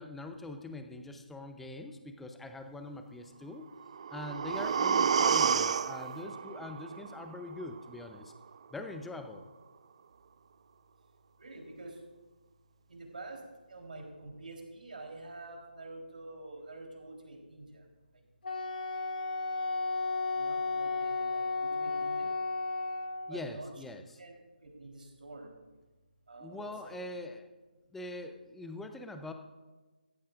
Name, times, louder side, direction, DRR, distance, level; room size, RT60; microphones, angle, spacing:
voice 1, 0.0-3.7 4.1-8.3 8.7-9.5 23.3-24.0 26.4-27.5 27.9-29.3, left 2 dB, 5° left, 6 dB, 0.6 m, -43 dB
sound 1, 3.8-7.8 8.1-8.2, right 6 dB, 40° right, 0.3 m, -30 dB
voice 2, 11.4-12.0 12.9-13.4 13.7-17.8 20.4-22.3 23.3-23.7 24.2-24.3 24.6-25.6 26.3-27.0, right 2 dB, 60° right, 1 dB, 3.8 m, -47 dB
Wind instrument woodwind instrument, 18.4-23.3, left 3 dB, 65° left, 2.4 m, -33 dB
16.0 x 15.0 x 2.5 m, 1.2 s
figure-of-eight pair, 155°, 5 cm